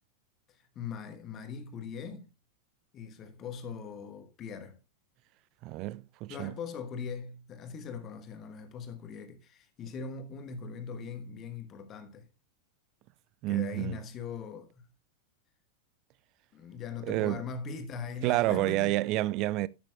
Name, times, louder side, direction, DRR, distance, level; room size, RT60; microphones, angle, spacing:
voice 1, 0.5-2.3 2.9-4.8 6.3-12.3 13.5-14.9 16.5-18.9, left 6 dB, 30° left, 1.3 m, -41 dB
voice 2, 5.6-6.5 13.4-14.0 17.1-17.4 18.2-19.7, right 17 dB, 40° right, 0.4 m, -29 dB
12.0 x 8.8 x 2.3 m
figure-of-eight pair, 90°, 0 cm